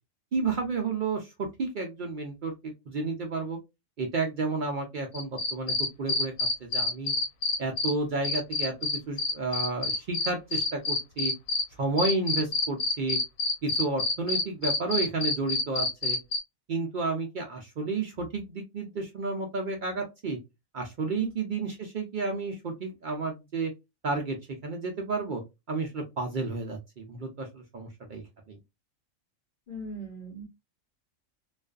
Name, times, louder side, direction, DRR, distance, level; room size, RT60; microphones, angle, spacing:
voice 1, 0.3-1.3 1.6-3.6 4.0-6.3 6.6-7.1 7.6-11.3 11.8-13.2 13.6-16.2 16.7-20.4 20.7-23.7 24.0-24.4 24.6-25.4 25.7-28.6, right 3 dB, 75° right, 2 dB, 0.4 m, -31 dB
sound 1, 5.1-7.9 8.2-11.6 12.0-16.4, left 3 dB, 85° left, 1.1 m, -27 dB
voice 2, 29.7-30.4, equal, 45° left, -2 dB, 0.9 m, -38 dB
2.4 x 2.3 x 2.3 m, 0.23 s
omnidirectional pair, 1.4 m